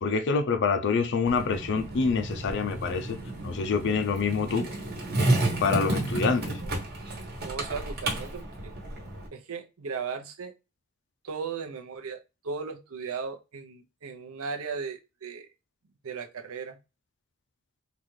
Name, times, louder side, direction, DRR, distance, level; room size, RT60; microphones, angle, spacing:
voice 1, 0.0-4.7 5.6-6.6, left 5 dB, 55° left, 0.4 m, -26 dB
Skateboard, 1.3-9.3, right 2 dB, 50° right, 1.2 m, -31 dB
voice 2, 7.4-8.7 9.3-10.5 11.2-12.2 12.4-15.5 16.0-16.8, right 5 dB, 75° right, 0.7 m, -36 dB
3.9 x 2.4 x 3.1 m
head